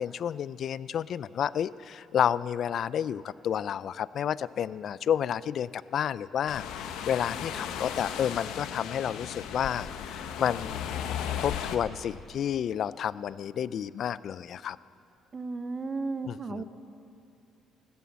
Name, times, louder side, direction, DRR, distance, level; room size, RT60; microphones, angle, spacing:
voice 1, 0.0-11.0 11.4-14.8 16.2-16.6, left 9 dB, 55° left, 19 dB, 0.3 m, -30 dB
sound 1, 6.5-11.8, left 8 dB, 90° left, 0.9 m, -36 dB
voice 2, 15.3-16.6, right 3 dB, 30° right, 11 dB, 0.7 m, -34 dB
15.5 x 12.5 x 7.4 m, 2.5 s
cardioid pair, 130°, 0 cm